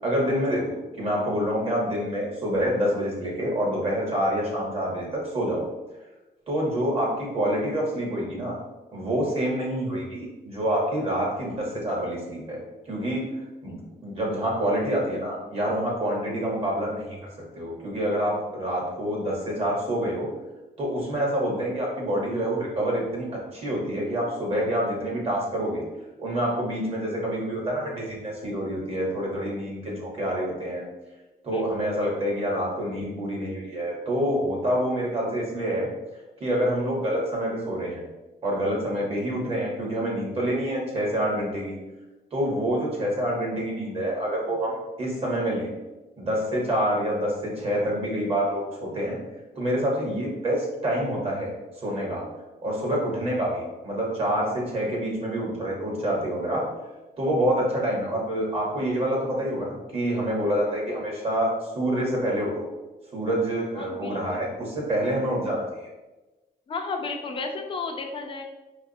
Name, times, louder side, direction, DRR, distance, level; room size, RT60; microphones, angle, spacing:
voice 1, 0.0-5.6 6.5-8.6 8.9-12.6 12.9-13.2 13.6-17.2 17.5-20.3 20.8-25.8 26.2-30.8 31.4-35.9 36.4-38.0 38.4-41.8 42.3-45.7 46.2-49.2 49.6-51.5 51.8-52.2 52.6-56.7 57.2-62.7 63.1-65.9, equal, 40° right, -3 dB, 1.0 m, -27 dB
voice 2, 63.8-64.4 66.7-68.4, left 4 dB, 35° left, 4 dB, 0.4 m, -33 dB
4.6 x 2.3 x 2.6 m, 1.1 s
wide cardioid pair, 150°, 16 cm